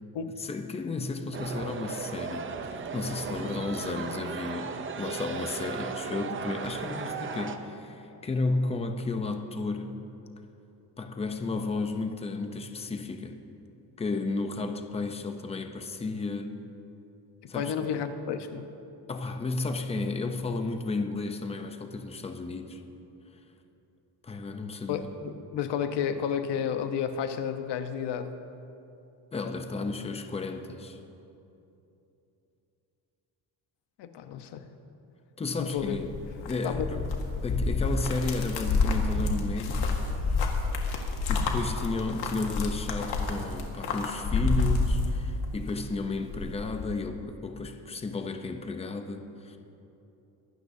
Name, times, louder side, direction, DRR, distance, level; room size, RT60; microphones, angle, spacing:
voice 1, 0.4-2.5 2.9-9.9 11.0-13.4 14.0-16.5 17.5-17.7 19.1-22.8 24.2-25.1 29.3-31.0 35.4-36.1 36.5-37.1 37.4-39.9 41.3-49.6, left 3 dB, 15° left, 6 dB, 0.6 m, -33 dB
sound 1, 1.3-7.6, right 5 dB, 30° right, 0.6 m, -36 dB
voice 2, 17.4-18.7 24.9-28.3 34.0-34.7 35.6-36.0 36.6-36.9, left 8 dB, 85° left, 8 dB, 1.0 m, -31 dB
sound 2, 35.8-45.7 46.0-46.9, left 3 dB, 70° left, 1.6 m, -29 dB
23.5 x 12.5 x 2.7 m, 2.9 s
cardioid pair, 175°, 40 cm